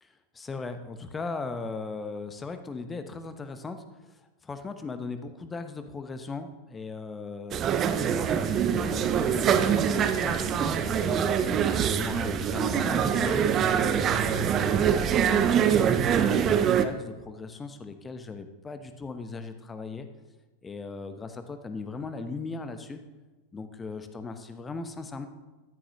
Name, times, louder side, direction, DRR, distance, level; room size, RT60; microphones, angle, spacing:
voice 1, 0.0-11.3 11.9-20.1 20.6-23.0 23.5-25.3, left 4 dB, 15° left, 9 dB, 0.9 m, -38 dB
sound 1, 7.5-16.9, right 8 dB, 30° right, 0.6 m, -24 dB
Musical instrument, 8.4-16.2, left 9 dB, 55° left, 1.4 m, -44 dB
13.5 x 10.0 x 3.0 m, 1.2 s
figure-of-eight pair, 90°, 0 cm